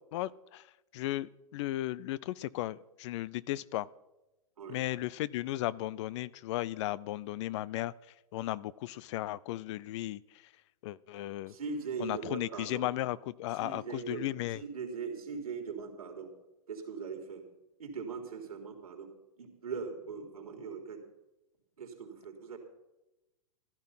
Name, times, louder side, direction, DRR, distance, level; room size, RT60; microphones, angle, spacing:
voice 1, 0.1-0.7 0.9-3.9 4.7-7.9 8.3-10.2 10.8-11.5 12.0-14.6, left 15 dB, 55° left, 21 dB, 0.5 m, -35 dB
voice 2, 11.5-12.9 13.6-16.3 16.7-17.4 17.8-19.1 19.4-21.0 21.8-22.6, right 5 dB, 90° right, 3 dB, 3.5 m, -40 dB
14.5 x 12.0 x 5.7 m, 0.99 s
hypercardioid pair, 125°, 18 cm